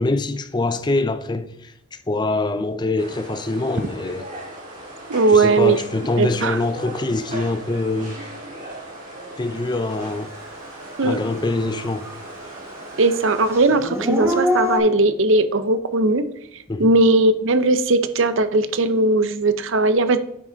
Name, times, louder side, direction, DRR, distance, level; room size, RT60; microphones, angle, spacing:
voice 1, 0.0-4.3 5.3-8.2 9.4-10.3 11.0-12.1 16.7-16.9, left 2 dB, 20° left, 0.4 m, -24 dB
sound 1, 3.0-13.6, right 1 dB, 35° right, 3.9 m, -38 dB
voice 2, 5.1-5.8 6.2-6.6 11.0-11.2 13.0-16.3 16.8-20.2, right 2 dB, 70° right, 0.7 m, -18 dB
Dog / Siren, 10.4-10.5 11.0-12.4 12.7-14.8, left 1 dB, 15° right, 1.5 m, -25 dB
9.4 x 6.2 x 3.9 m
head